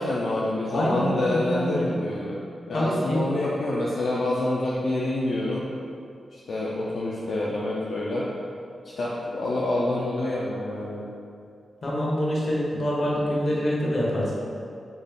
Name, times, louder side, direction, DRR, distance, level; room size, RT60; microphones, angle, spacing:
voice 1, 0.0-2.4 2.7-5.7 6.3-8.3 9.0-11.1, left 2 dB, 65° left, -5 dB, 0.5 m, -27 dB
voice 2, 0.7-1.9 2.7-3.3 11.8-14.3, equal, 45° left, -5 dB, 1.0 m, -25 dB
4.1 x 3.4 x 3.6 m, 2.5 s
wide cardioid pair, 125°, 0 cm